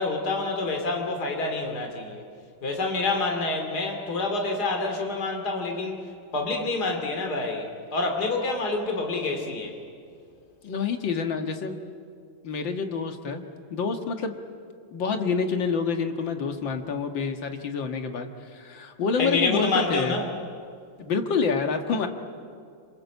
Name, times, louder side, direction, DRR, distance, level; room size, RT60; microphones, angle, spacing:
voice 1, 0.0-2.2 2.6-9.8 19.2-20.3, left 3 dB, 50° left, 3 dB, 3.2 m, -27 dB
voice 2, 10.6-11.8 12.4-13.4 13.7-14.3 14.9-20.2 21.0-22.1, left 5 dB, 70° left, 6 dB, 2.4 m, -27 dB
27.0 x 26.0 x 8.3 m, 2.4 s
omnidirectional pair, 2.2 m